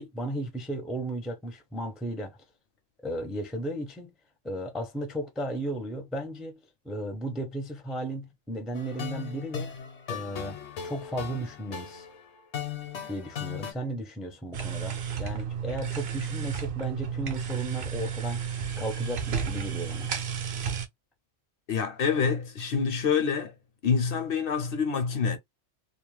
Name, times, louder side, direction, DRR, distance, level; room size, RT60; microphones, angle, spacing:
voice 1, 0.0-2.4 3.0-4.1 4.4-6.6 6.8-9.7 10.1-10.6 10.8-12.1 13.1-18.4 18.8-20.1, right 1 dB, ahead, 0.3 m, -35 dB
sound 1, 8.7-13.7, left 8 dB, 80° left, 1.0 m, -38 dB
sound 2, 14.5-20.9, right 7 dB, 60° right, 0.7 m, -32 dB
voice 2, 21.7-23.5 23.8-25.4, left 6 dB, 65° left, 0.7 m, -26 dB
2.4 x 2.0 x 3.1 m
omnidirectional pair, 1.2 m